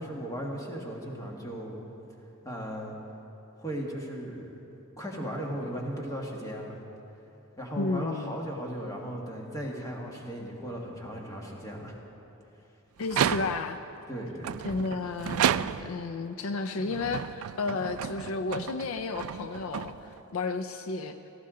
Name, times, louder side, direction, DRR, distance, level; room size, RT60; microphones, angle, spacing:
voice 1, 0.0-1.8 2.4-3.0 3.6-4.5 5.0-6.8 7.6-12.0 14.1-14.6, equal, 15° left, -1 dB, 1.6 m, -36 dB
voice 2, 7.8-8.4 13.0-13.8 14.6-21.1, left 3 dB, 70° left, 9 dB, 0.5 m, -32 dB
sound 1, 13.0-13.8 14.4-16.1 16.8-20.3, right 9 dB, 75° right, 0.3 m, -32 dB
18.0 x 14.5 x 3.8 m, 2.9 s
head